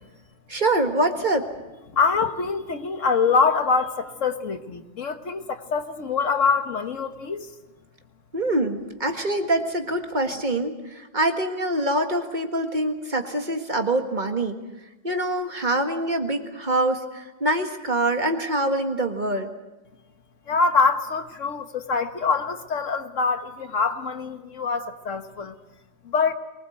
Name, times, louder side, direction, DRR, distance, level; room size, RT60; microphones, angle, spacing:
voice 1, 0.5-1.5 8.3-14.6 15.0-19.5, right 1 dB, 40° right, 1.9 m, -25 dB
voice 2, 1.9-7.5 20.5-25.5 26.0-26.3, left 5 dB, 85° left, 1.7 m, -24 dB
23.0 x 20.5 x 8.0 m
omnidirectional pair, 1.3 m